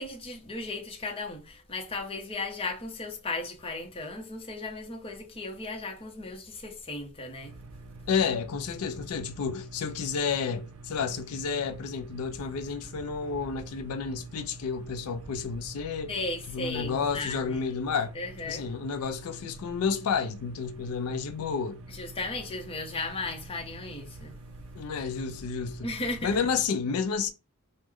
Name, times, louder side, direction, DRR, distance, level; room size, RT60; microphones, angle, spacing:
voice 1, 0.0-7.5 16.1-17.6 18.1-18.7 21.9-24.3 25.8-26.3, left 2 dB, 25° left, 0.7 m, -36 dB
sound 1, 7.4-26.7, right 2 dB, 75° right, 0.5 m, -46 dB
voice 2, 8.1-16.1 16.5-18.1 18.5-21.8 24.7-25.9 26.2-27.3, left 5 dB, 85° left, 0.4 m, -31 dB
3.0 x 2.0 x 3.6 m
head